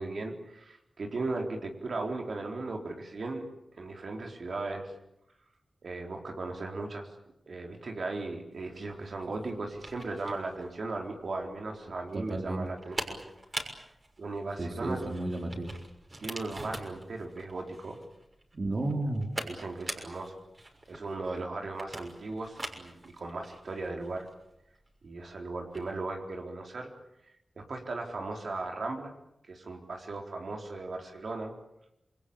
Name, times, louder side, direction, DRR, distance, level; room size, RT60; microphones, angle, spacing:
voice 1, 0.0-3.4 3.8-4.9 5.8-7.1 7.5-13.2 14.2-15.1 16.2-18.0 19.4-20.4 20.9-24.3 25.0-26.9 27.6-29.1 29.5-31.5, right 3 dB, 70° right, 2 dB, 4.2 m, -37 dB
sound 1, 8.6-26.0, right 2 dB, 35° right, 6.4 m, -44 dB
voice 2, 12.1-12.7 14.6-15.7 18.5-19.3, right 2 dB, 55° right, 3 dB, 3.8 m, -32 dB
28.0 x 21.5 x 8.7 m, 0.82 s
cardioid pair, 50°, 0 cm